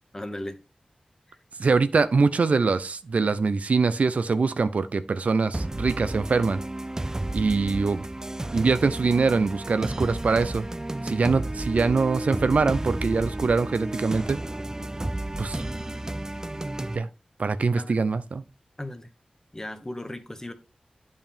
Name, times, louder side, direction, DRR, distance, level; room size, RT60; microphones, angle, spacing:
voice 1, 0.1-0.6 1.3-1.4 17.8-17.9 18.8-19.1 19.5-20.5, left 1 dB, 20° left, 1.3 m, -36 dB
voice 2, 1.6-6.6 7.3-8.1 8.5-10.6 11.0-14.4 15.4-15.6 16.9-17.1 17.4-18.4, right 4 dB, 75° right, 0.6 m, -23 dB
sound 1, 5.5-17.0, right 1 dB, 25° right, 0.4 m, -32 dB
8.8 x 5.4 x 3.5 m
cardioid pair, 45°, 2 cm